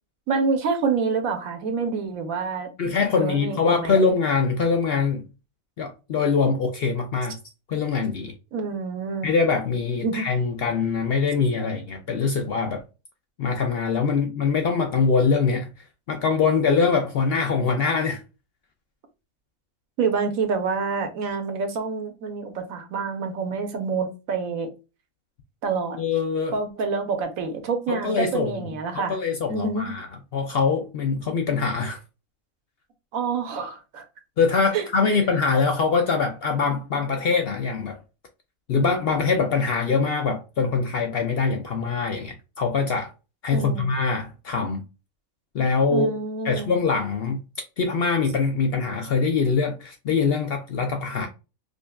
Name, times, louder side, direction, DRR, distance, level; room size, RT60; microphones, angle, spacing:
voice 1, 0.3-2.7 3.2-4.0 8.5-9.3 10.0-10.3 20.0-24.7 25.6-26.0 26.5-29.2 29.5-29.9 33.1-34.0 34.7-35.2 43.5-43.9 45.9-46.7, right 5 dB, 80° right, 1.2 m, -27 dB
voice 2, 2.8-5.3 5.8-7.4 7.7-8.3 9.2-12.8 13.4-15.7 16.1-18.2 26.0-26.6 27.9-28.6 28.9-30.1 30.3-32.0 34.4-38.0 38.7-43.1 43.4-44.8 45.5-46.1 46.4-47.4 47.8-51.3, left 5 dB, 60° left, 0.6 m, -23 dB
4.9 x 2.4 x 2.2 m
omnidirectional pair, 1.4 m